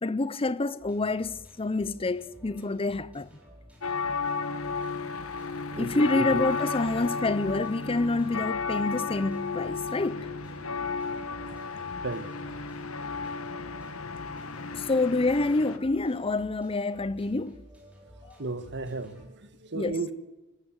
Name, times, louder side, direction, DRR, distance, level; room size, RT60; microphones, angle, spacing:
voice 1, 0.0-3.3 5.8-10.3 14.7-17.6 19.7-20.0, left 2 dB, 25° left, 0.7 m, -27 dB
sound 1, 0.8-19.3, equal, 5° right, 5.6 m, -52 dB
sound 2, 3.8-15.8, left 4 dB, 80° left, 1.4 m, -33 dB
voice 2, 5.7-6.5 12.0-12.3 18.4-20.1, right 3 dB, 55° right, 1.8 m, -34 dB
27.0 x 14.0 x 8.3 m
head